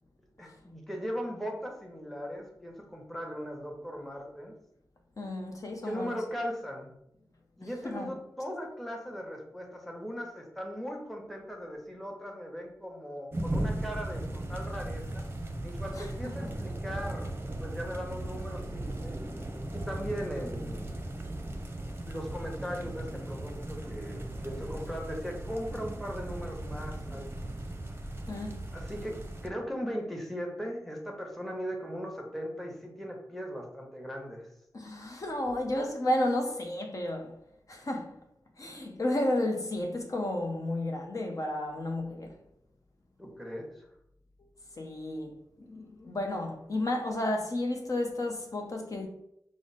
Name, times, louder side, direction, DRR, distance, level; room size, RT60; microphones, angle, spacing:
voice 1, 0.4-4.6 5.8-6.9 7.6-15.3 15.6-17.3 17.6-19.2 19.7-21.0 22.0-27.5 28.7-34.5 43.2-43.9, equal, 5° left, 0.9 m, -38 dB
voice 2, 5.2-6.2 7.8-8.1 16.0-16.3 28.3-28.7 34.7-37.3 37.7-38.1 38.6-42.3 44.4-44.5 44.8-45.3 45.6-49.1, left 1 dB, 50° left, 0.6 m, -32 dB
sound 1, 13.3-29.5, right 1 dB, 30° right, 0.6 m, -37 dB
4.8 x 2.0 x 4.0 m
wide cardioid pair, 65°, 7 cm